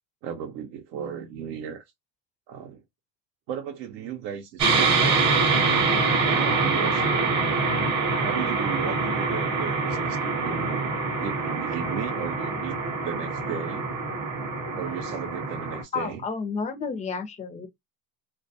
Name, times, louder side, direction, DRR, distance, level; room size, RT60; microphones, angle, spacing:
voice 1, 0.2-1.8 2.5-2.8 3.5-5.3 6.2-7.6 8.2-10.9 11.2-12.7 13.0-13.9 14.7-16.2, right 8 dB, 90° right, 0.7 m, -35 dB
sound 1, 4.6-15.8, right 4 dB, 35° right, 0.7 m, -25 dB
voice 2, 15.9-17.7, left 5 dB, 15° left, 0.3 m, -31 dB
2.2 x 2.2 x 2.6 m
supercardioid pair, 110°, 49 cm